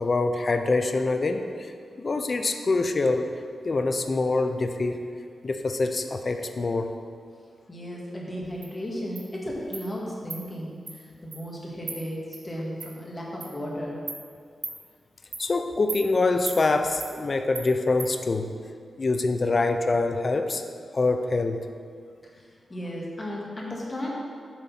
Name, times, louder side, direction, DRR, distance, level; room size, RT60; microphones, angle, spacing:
voice 1, 0.0-3.3 3.6-5.0 5.4-6.9 15.4-18.5 19.0-20.6 20.9-21.7, left 3 dB, 50° left, 7 dB, 0.5 m, -25 dB
voice 2, 7.7-14.0 22.2-24.1, equal, 30° left, -3 dB, 1.8 m, -35 dB
Insect, 8.6-8.7 9.2-9.3 9.7-9.8 10.3-10.4 10.9-11.0 11.3-11.4 11.9-12.0 12.3-12.4 12.8-12.9 13.4-13.5 14.1-14.2 14.6-14.8 15.3-15.5 15.9-16.0 16.5-16.6 17.0-17.1 17.5-17.7 18.0-18.1, right 4 dB, 60° right, 1.0 m, -35 dB
7.3 x 4.0 x 5.6 m, 2.2 s
cardioid pair, 55°, 0 cm